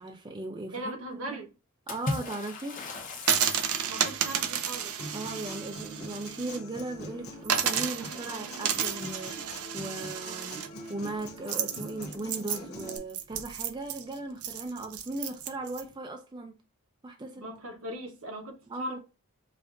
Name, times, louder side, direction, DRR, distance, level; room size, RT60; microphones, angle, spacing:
voice 1, 0.0-0.9 1.3-1.4 1.9-2.8 5.1-10.6 10.9-16.5 17.0-17.4 18.7-19.0, right 2 dB, 20° right, 0.4 m, -38 dB
voice 2, 0.7-1.5 3.9-4.9 17.3-19.0, right 1 dB, 70° right, 1.0 m, -39 dB
Water / Splash splatter, 1.9-4.3, left 2 dB, 35° left, 0.9 m, -36 dB
sound 1, 3.2-6.6 6.9-7.0 7.4-15.8, right 8 dB, 85° right, 0.6 m, -32 dB
Human voice / Acoustic guitar, 5.0-13.0, equal, 80° left, 0.9 m, -43 dB
5.0 x 2.5 x 2.5 m
head